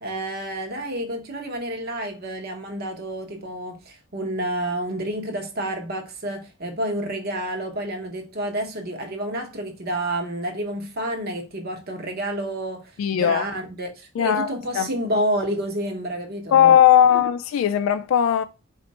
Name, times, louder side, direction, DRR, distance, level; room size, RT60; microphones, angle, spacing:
voice 1, 0.0-16.8 17.1-17.2, right 1 dB, 50° right, 1.0 m, -29 dB
voice 2, 13.0-13.5 14.2-14.9 16.5-18.4, left 9 dB, 80° left, 0.3 m, -18 dB
4.3 x 2.5 x 4.1 m
head